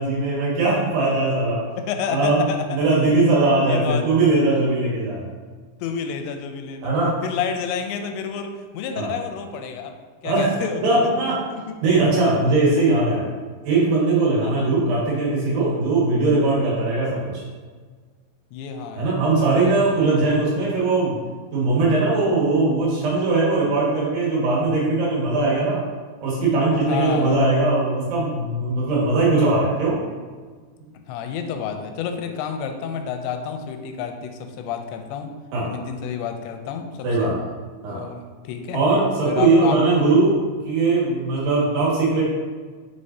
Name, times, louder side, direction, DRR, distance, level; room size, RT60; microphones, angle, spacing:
voice 1, 0.0-1.6 2.1-2.4 2.7-5.3 6.8-7.2 9.0-9.1 10.2-10.5 10.8-11.3 11.8-13.2 13.6-17.4 19.0-21.2 21.5-25.8 26.2-30.0 35.5-35.7 37.0-37.4 37.8-38.0 38.7-42.2, right 3 dB, 70° right, -6 dB, 3.8 m, -20 dB
voice 2, 1.8-2.8 3.6-4.1 5.8-6.9 7.2-9.9 10.2-11.1 11.5-11.8 12.7-12.9 14.4-14.7 18.5-20.4 26.9-27.4 31.1-35.3 35.7-37.4 37.9-38.8 39.3-39.8, left 7 dB, 85° left, 6 dB, 2.8 m, -30 dB
7.1 x 6.6 x 2.7 m, 1.5 s
omnidirectional pair, 5.1 m